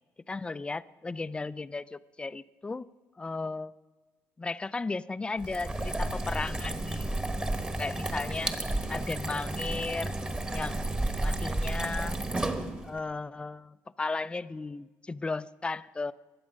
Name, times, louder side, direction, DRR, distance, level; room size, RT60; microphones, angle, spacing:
voice 1, 0.3-2.9 3.2-3.7 4.4-7.1 7.8-8.5 8.9-10.1 10.5-10.9 11.2-12.2 12.8-16.1, left 3 dB, 15° left, 16 dB, 0.4 m, -35 dB
sound 1, 5.4-13.0, right 1 dB, 15° right, 1.1 m, -32 dB
22.5 x 7.7 x 6.3 m, 1.3 s
cardioid pair, 105°, 6 cm